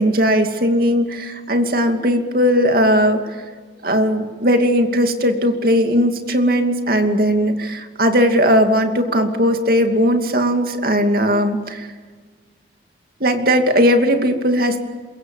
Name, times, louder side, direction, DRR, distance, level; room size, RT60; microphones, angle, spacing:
voice 1, 0.0-3.2 3.8-11.9 13.2-14.9, equal, 50° right, 5 dB, 2.6 m, -17 dB
27.0 x 23.5 x 7.3 m, 1.5 s
head